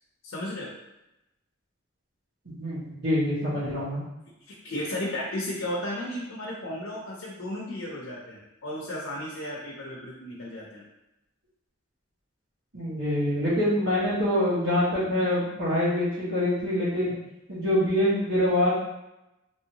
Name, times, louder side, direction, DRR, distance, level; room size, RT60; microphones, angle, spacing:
voice 1, 0.2-0.7 4.5-10.8, left 1 dB, 80° left, -4 dB, 0.6 m, -34 dB
voice 2, 2.6-4.0 12.7-17.1 17.5-18.7, left 1 dB, 75° right, -13 dB, 1.2 m, -25 dB
3.1 x 2.7 x 2.8 m, 0.91 s
head